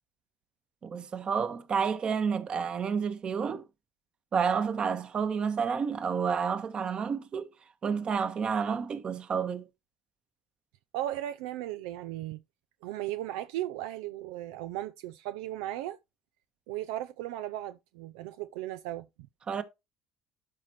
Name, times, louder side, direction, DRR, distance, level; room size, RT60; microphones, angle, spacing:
voice 1, 0.8-3.6 4.3-7.5 7.8-9.6 19.5-19.6, right 6 dB, 45° right, 1.3 m, -30 dB
voice 2, 10.9-12.4 12.8-16.0 16.7-19.1, right 14 dB, 80° right, 0.4 m, -36 dB
12.0 x 4.3 x 3.1 m
hypercardioid pair, 70°, 2 cm